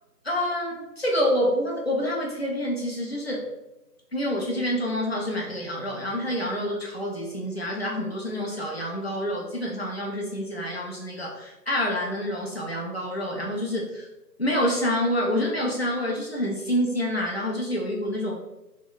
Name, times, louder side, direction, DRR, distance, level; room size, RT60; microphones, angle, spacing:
voice 1, 0.2-3.4 4.1-14.1 14.4-18.4, equal, 40° left, -3 dB, 0.4 m, -27 dB
3.0 x 2.1 x 3.8 m, 0.96 s
figure-of-eight pair, 160°, 49 cm